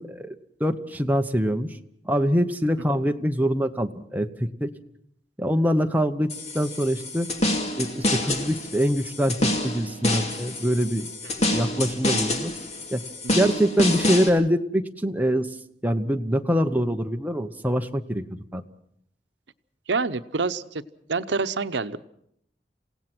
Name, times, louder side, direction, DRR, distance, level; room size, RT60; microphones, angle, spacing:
voice 1, 0.0-1.8 2.0-4.7 5.4-7.3 7.8-12.5 12.9-13.0 13.4-15.6 15.8-18.2 18.5-18.6, equal, 10° right, 6 dB, 0.9 m, -24 dB
sound 1, 6.3-14.3, left 1 dB, 40° left, 2.4 m, -27 dB
voice 2, 19.9-20.8 21.1-22.0, right 4 dB, 85° right, 13 dB, 0.8 m, -27 dB
28.0 x 17.0 x 6.1 m, 0.70 s
head